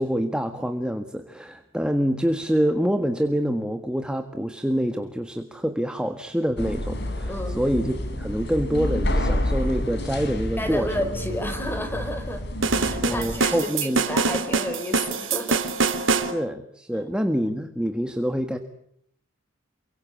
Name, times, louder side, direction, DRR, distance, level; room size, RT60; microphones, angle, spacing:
voice 1, 0.0-11.0 13.0-14.0 16.3-18.6, equal, 5° right, 7 dB, 1.6 m, -26 dB
sound 1, 6.6-13.4, left 1 dB, 60° left, 4.4 m, -29 dB
voice 2, 7.3-7.6 10.6-15.6 15.9-16.2 16.9-17.1, equal, 10° left, 8 dB, 4.9 m, -31 dB
sound 2, 12.6-16.3, right 4 dB, 80° right, 3.4 m, -24 dB
28.5 x 24.5 x 8.3 m, 0.69 s
head